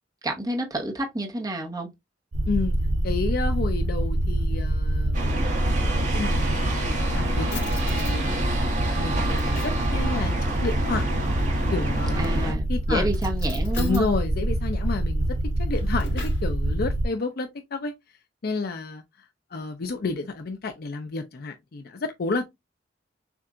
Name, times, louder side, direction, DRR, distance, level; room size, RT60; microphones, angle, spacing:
voice 1, 0.2-1.9 12.2-14.1, right 1 dB, 20° right, 1.1 m, -29 dB
sound 1, 2.3-17.0, right 1 dB, 75° right, 0.8 m, -25 dB
voice 2, 3.0-5.2 5.8-7.6 7.9-8.4 9.0-10.3 10.6-11.1 11.7-13.1 13.8-17.9 18.4-19.3 19.5-22.4, left 3 dB, 55° left, 0.5 m, -30 dB
sound 2, 5.1-12.5, right 1 dB, 45° right, 1.7 m, -30 dB
Drawer open or close, 5.6-6.6 7.1-7.2 7.5-8.2 8.8-9.9 11.8-12.3 13.1-14.1 15.5-16.5, left 5 dB, 80° left, 2.5 m, -42 dB
7.0 x 2.5 x 2.4 m
head